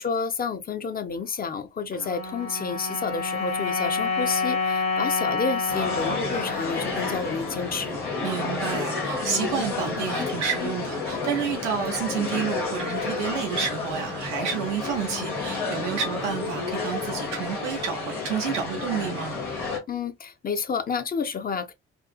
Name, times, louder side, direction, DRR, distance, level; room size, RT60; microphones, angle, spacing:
voice 1, 0.0-8.0 19.9-21.7, left 5 dB, 25° left, 0.5 m, -30 dB
sound 1, 1.9-8.3, left 4 dB, 45° left, 1.1 m, -29 dB
sound 2, 5.7-19.8, left 4 dB, 90° left, 1.0 m, -30 dB
voice 2, 8.2-19.4, right 7 dB, 85° right, 0.5 m, -30 dB
2.6 x 2.4 x 2.3 m
figure-of-eight pair, 45°, 34 cm